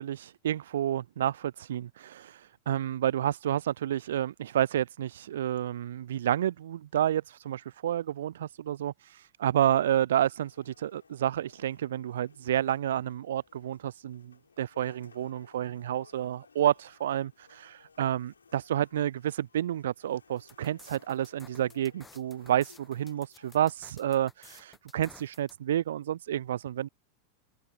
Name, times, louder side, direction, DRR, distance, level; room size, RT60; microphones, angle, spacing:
voice 1, 0.0-26.9, right 11 dB, 60° right, 0.4 m, -30 dB
sound 1, 10.3-23.6, left 5 dB, 75° left, 6.5 m, -60 dB
sound 2, 20.4-25.6, left 3 dB, 10° left, 0.9 m, -55 dB
open air
figure-of-eight pair, 90°, 0 cm